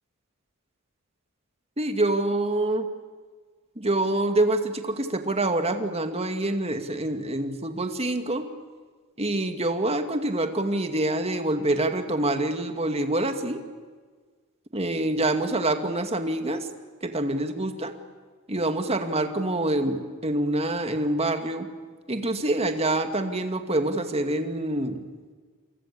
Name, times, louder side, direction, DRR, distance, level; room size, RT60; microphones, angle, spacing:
voice 1, 1.8-2.9 3.8-8.4 9.2-13.6 14.7-16.7 17.0-17.9 18.5-21.7 22.1-25.0, right 1 dB, 30° right, 6 dB, 2.2 m, -26 dB
29.0 x 23.5 x 8.6 m, 1.5 s
head